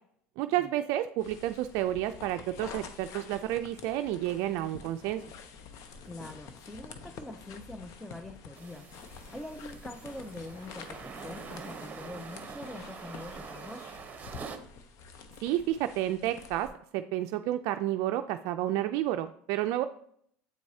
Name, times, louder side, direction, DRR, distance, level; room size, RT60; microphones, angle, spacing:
voice 1, 0.4-5.2 15.4-19.8, right 13 dB, 65° right, 7 dB, 0.3 m, -30 dB
sound 1, 1.2-16.7, left 5 dB, 60° left, 0.8 m, -48 dB
voice 2, 6.0-8.9 9.3-13.9, left 1 dB, 5° left, 7 dB, 0.5 m, -44 dB
sound 2, 8.6-14.6, right 5 dB, 25° right, 0.9 m, -45 dB
8.1 x 4.5 x 2.8 m, 0.64 s
supercardioid pair, 95°, 6 cm